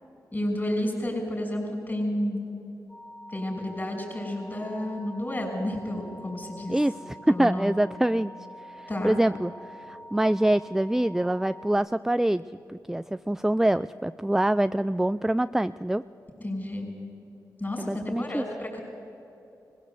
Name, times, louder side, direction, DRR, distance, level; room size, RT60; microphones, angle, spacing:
voice 1, 0.3-2.4 3.3-6.8 7.3-7.8 8.9-9.2 16.4-16.9 17.6-18.8, left 1 dB, 25° left, 2 dB, 5.9 m, -31 dB
sound 1, 2.9-11.7, equal, 50° left, 4.6 m, -46 dB
voice 2, 6.7-8.3 8.7-12.4 12.7-16.0 17.8-18.4, right 1 dB, 5° right, 14 dB, 0.3 m, -25 dB
20.0 x 16.0 x 8.1 m, 2.9 s
cardioid pair, 50°, 7 cm